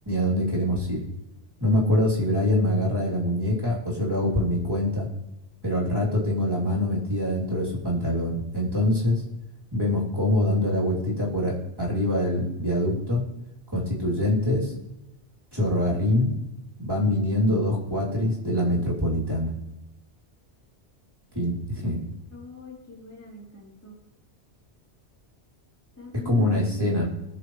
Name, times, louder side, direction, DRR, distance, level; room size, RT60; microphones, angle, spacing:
voice 1, 0.1-1.0 1.6-5.1 5.6-9.2 9.7-13.2 13.7-14.7 15.5-16.3 16.8-19.5 21.3-22.0 26.2-27.1, left 1 dB, 20° right, -5 dB, 3.2 m, -24 dB
voice 2, 22.3-24.0 26.0-26.9, left 1 dB, 15° left, -5 dB, 3.3 m, -41 dB
20.5 x 6.8 x 3.2 m, 0.95 s
omnidirectional pair, 1.1 m